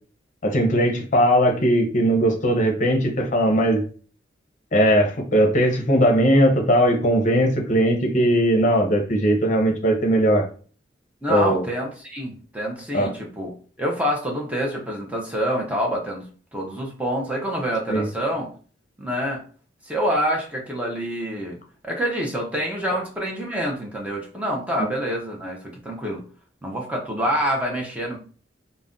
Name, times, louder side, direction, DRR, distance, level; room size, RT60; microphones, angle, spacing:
voice 1, 0.4-3.8 4.7-10.4 11.3-11.6 12.9-13.1 17.9-18.1, equal, 40° left, 2 dB, 0.6 m, -19 dB
voice 2, 11.2-18.5 19.0-19.4 19.8-21.6 21.8-26.2 26.6-28.2, equal, 10° right, -2 dB, 0.5 m, -27 dB
2.4 x 2.1 x 3.6 m, 0.41 s
head